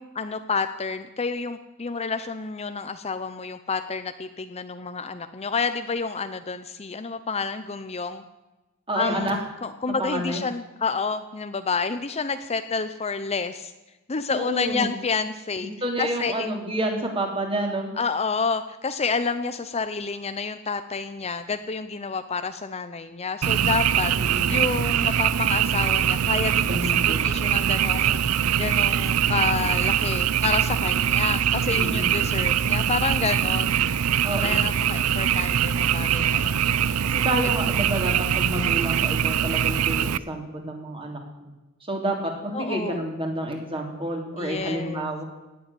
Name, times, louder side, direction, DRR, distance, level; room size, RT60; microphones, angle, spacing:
voice 1, 0.0-8.2 8.9-13.7 14.1-15.7 16.0-16.5 18.0-28.2 28.6-33.8 34.4-36.6 42.5-43.0 44.4-45.1, left 4 dB, 30° left, 10 dB, 0.7 m, -29 dB
voice 2, 8.9-9.3 10.0-10.4 14.3-14.9 15.8-17.9 24.1-24.6 26.7-27.3 31.7-32.1 34.2-34.7 37.0-41.5 41.9-45.2, right 1 dB, 25° right, 1 dB, 3.2 m, -29 dB
Frog, 23.4-40.2, right 9 dB, 80° right, 0.5 m, -23 dB
17.5 x 7.8 x 9.8 m, 1.0 s
head